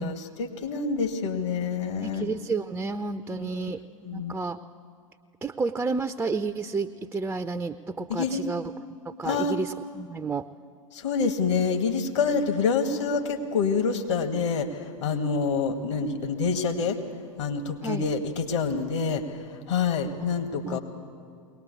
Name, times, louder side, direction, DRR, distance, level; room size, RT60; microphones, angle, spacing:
voice 1, 0.0-2.3 3.3-3.7 4.0-4.3 8.1-8.4 9.2-9.5 10.9-17.0 17.4-20.8, left 5 dB, 60° left, 6 dB, 1.9 m, -27 dB
voice 2, 2.0-3.8 4.1-4.6 5.4-8.6 9.0-10.4 17.8-18.1 20.7-20.8, right 3 dB, 10° right, 8 dB, 0.5 m, -31 dB
22.0 x 19.0 x 8.3 m, 2.2 s
figure-of-eight pair, 90°, 18 cm